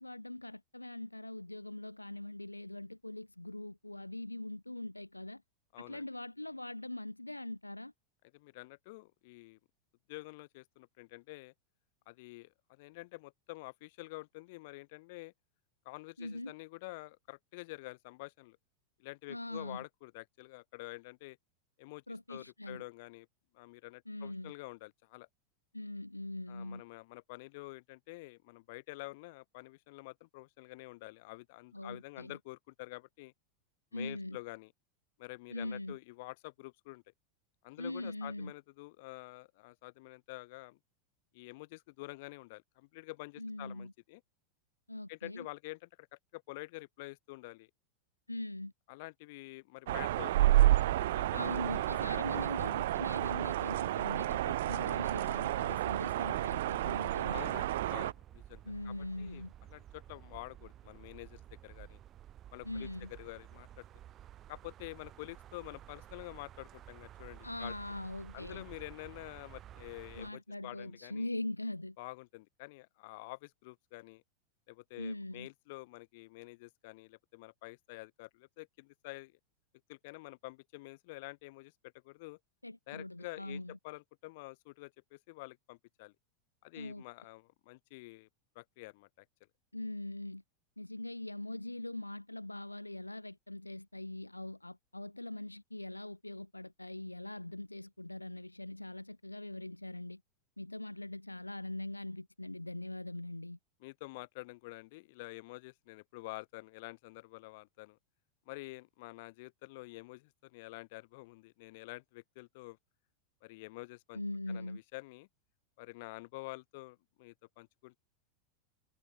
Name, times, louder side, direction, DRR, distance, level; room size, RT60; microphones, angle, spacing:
voice 1, 0.0-5.4 5.8-7.9 16.2-16.5 19.3-19.8 22.1-22.8 24.1-24.5 25.7-26.8 31.7-32.4 33.9-34.4 35.5-36.0 37.8-38.5 43.4-43.9 44.9-45.5 48.3-48.7 51.3-57.5 58.6-59.5 62.6-63.1 67.4-68.6 70.1-72.0 75.0-75.5 82.6-83.8 86.7-87.0 89.7-90.4 90.8-100.2 100.6-103.6 114.1-114.8, left 2 dB, 85° left, 0.9 m, -42 dB
voice 2, 5.7-6.1 8.3-9.6 10.1-11.5 12.1-15.3 15.8-18.6 19.0-21.4 21.8-22.0 22.3-23.3 23.5-25.3 26.5-33.3 33.9-34.7 35.2-37.0 37.6-40.8 41.3-44.2 45.1-47.7 48.9-52.4 57.3-59.4 59.7-62.0 62.5-63.9 64.5-67.7 68.3-71.3 72.0-74.2 74.7-79.4 79.9-82.4 82.9-86.1 86.6-88.3 88.6-89.3 103.8-108.0 108.5-112.8 113.4-114.2 114.5-115.3 115.8-118.0, left 23 dB, 50° left, 2.2 m, -48 dB
sound 1, 49.9-58.1, right 14 dB, 55° right, 0.3 m, -30 dB
sound 2, 55.6-70.3, right 11 dB, 30° right, 3.1 m, -53 dB
figure-of-eight pair, 90°, 0 cm